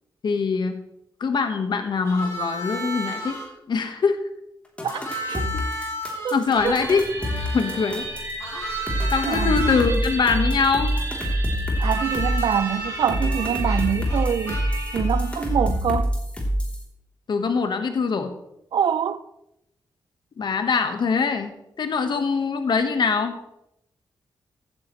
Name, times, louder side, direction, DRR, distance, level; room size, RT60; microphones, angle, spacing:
voice 1, 0.2-0.8 1.2-3.4 3.7-4.2 5.5-5.9 6.3-7.0 7.5-8.1 9.1-11.0 17.3-18.3 20.4-21.5 21.8-23.5, left 5 dB, 70° left, 1.4 m, -23 dB
Harmonica, 2.0-3.5 4.9-9.9 11.8-15.7, equal, 35° left, 4.2 m, -34 dB
sound 1, 4.8-8.3 8.9-12.5 13.1-16.8, equal, 15° left, 3.3 m, -25 dB
voice 2, 6.2-6.8 9.2-9.5 11.8-14.6 14.9-16.2 18.7-19.2, right 8 dB, 75° right, 0.4 m, -25 dB
sound 2, 6.5-15.0, right 3 dB, 40° right, 4.1 m, -34 dB
14.5 x 9.6 x 3.2 m
cardioid pair, 65°, 8 cm